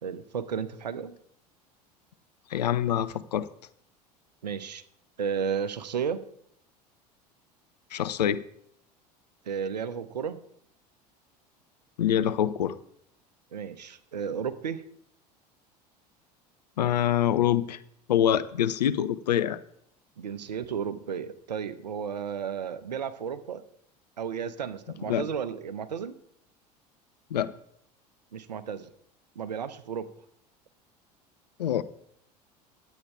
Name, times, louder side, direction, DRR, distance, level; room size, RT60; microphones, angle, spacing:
voice 1, 0.0-1.2 4.4-4.8 5.2-6.2 9.4-10.4 13.5-14.8 20.2-23.6 24.2-26.2 28.3-28.9 29.4-30.1, right 7 dB, 80° right, 12 dB, 0.8 m, -33 dB
voice 2, 2.5-3.5 7.9-8.4 12.0-12.8 16.8-17.8 18.1-19.6 25.1-25.3 27.3-27.5 31.6-31.8, left 10 dB, 75° left, 14 dB, 0.6 m, -25 dB
11.0 x 8.2 x 4.7 m, 0.70 s
figure-of-eight pair, 75°, 21 cm